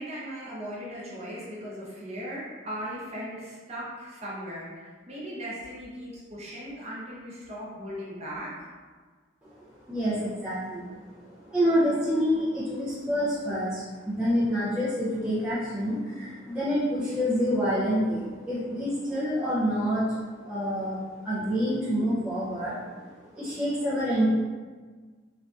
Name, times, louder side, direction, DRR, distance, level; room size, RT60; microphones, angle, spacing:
voice 1, 0.0-8.7, equal, 35° right, -7 dB, 0.7 m, -38 dB
voice 2, 9.4-24.3, equal, 5° right, -11 dB, 0.4 m, -28 dB
3.2 x 2.6 x 2.3 m, 1.5 s
head